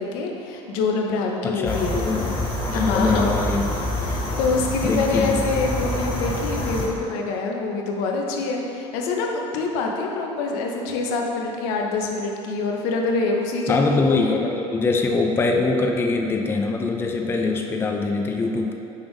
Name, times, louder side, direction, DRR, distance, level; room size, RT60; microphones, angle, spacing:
voice 1, 0.0-2.0 2.7-3.3 4.0-14.2, left 3 dB, 75° left, 1 dB, 0.6 m, -25 dB
voice 2, 1.4-2.4 2.7-3.7 4.8-5.4 13.7-18.7, left 3 dB, 15° left, 2 dB, 0.3 m, -23 dB
sound 1, 1.7-6.9, left 1 dB, 35° left, 0.9 m, -27 dB
5.3 x 2.5 x 3.4 m, 2.8 s
supercardioid pair, 90°, 15 cm